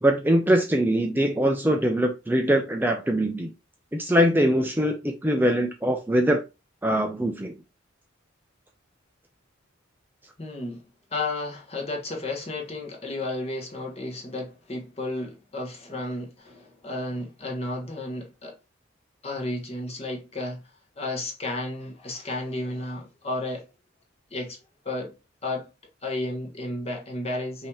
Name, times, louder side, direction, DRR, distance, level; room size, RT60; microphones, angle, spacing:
voice 1, 0.0-3.5 3.9-6.4 6.8-7.5, equal, 10° right, 0.5 m, -22 dB
voice 2, 10.4-10.8 11.1-18.6 19.2-20.6 21.0-23.6 24.3-24.6 24.8-25.1 25.4-25.7 26.0-27.7, left 2 dB, 30° left, 1.2 m, -32 dB
5.4 x 2.8 x 3.4 m
head